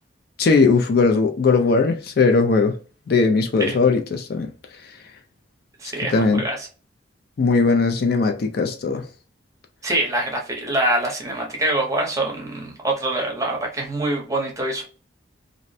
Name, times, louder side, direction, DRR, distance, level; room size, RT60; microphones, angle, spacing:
voice 1, 0.4-2.8 3.1-4.5 6.1-6.4 7.4-9.0, left 4 dB, 50° left, 0.4 m, -19 dB
voice 2, 5.8-6.7 9.8-14.8, right 1 dB, 15° right, 0.7 m, -24 dB
2.5 x 2.1 x 2.6 m
head